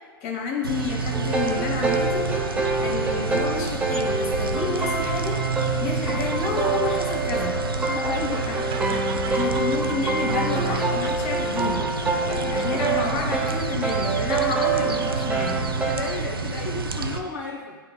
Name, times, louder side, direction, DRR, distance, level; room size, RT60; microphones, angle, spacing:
voice 1, 0.2-2.4 2.8-7.6 8.5-8.6 8.9-12.0 12.2-15.8, left 4 dB, 45° left, 1 dB, 1.4 m, -30 dB
sound 1, 0.6-17.2, right 4 dB, 85° right, 0.5 m, -29 dB
sound 2, 1.1-16.0, right 3 dB, 10° right, 0.9 m, -27 dB
Laughter, 4.9-13.3 13.7-14.4, right 6 dB, 35° right, 0.6 m, -41 dB
voice 2, 7.9-8.5 8.8-8.9 9.2-9.3 15.9-17.8, left 4 dB, 65° left, -3 dB, 0.9 m, -33 dB
10.5 x 3.8 x 2.4 m, 1.3 s
figure-of-eight pair, 100°, 12 cm